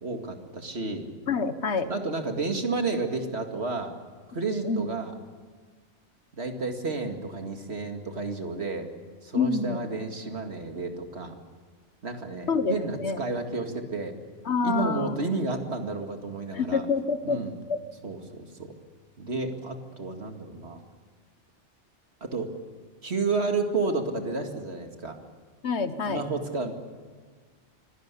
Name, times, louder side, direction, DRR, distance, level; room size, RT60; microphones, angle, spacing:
voice 1, 0.0-1.1 1.8-3.9 4.3-5.1 6.3-8.9 9.2-11.3 12.0-14.1 14.6-16.9 17.2-17.6 18.0-18.7 19.2-20.8 22.2-22.5 23.0-25.2 26.1-26.7, right 3 dB, 65° right, 4 dB, 2.4 m, -31 dB
voice 2, 1.3-1.9 4.6-4.9 9.3-9.9 12.5-13.2 14.4-15.1 16.5-17.4 17.7-17.8 25.6-26.3, left 4 dB, 70° left, 11 dB, 1.5 m, -27 dB
25.5 x 17.0 x 8.4 m, 1.5 s
omnidirectional pair, 1.2 m